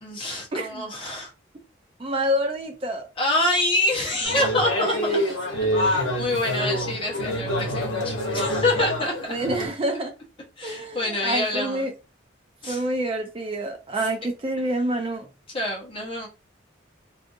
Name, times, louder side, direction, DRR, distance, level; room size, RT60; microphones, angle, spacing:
voice 1, 0.0-1.3 3.2-5.1 5.7-9.1 10.6-11.9 12.6-12.8 15.5-16.3, left 1 dB, 25° left, 1.0 m, -26 dB
voice 2, 0.5-0.8 2.0-3.0 4.9-5.2 7.7-7.9 9.3-10.1 10.6-11.9 12.7-15.3, right 1 dB, 25° right, 0.3 m, -27 dB
sound 1, 4.2-9.7, left 1 dB, 75° left, 1.0 m, -26 dB
2.6 x 2.5 x 2.5 m
head